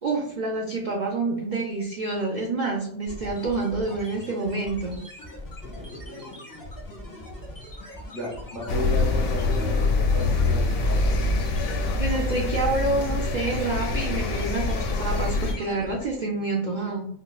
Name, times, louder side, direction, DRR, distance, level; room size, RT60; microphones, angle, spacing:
voice 1, 0.0-5.0 12.0-17.1, right 3 dB, 75° right, -1 dB, 0.4 m, -28 dB
sound 1, 3.1-16.2, left 1 dB, 20° left, 0.6 m, -41 dB
voice 2, 5.6-6.5 7.7-11.2, equal, 30° right, -4 dB, 1.3 m, -35 dB
sound 2, 8.7-15.5, left 3 dB, 75° left, 1.0 m, -25 dB
4.5 x 2.1 x 2.3 m, 0.72 s
omnidirectional pair, 1.5 m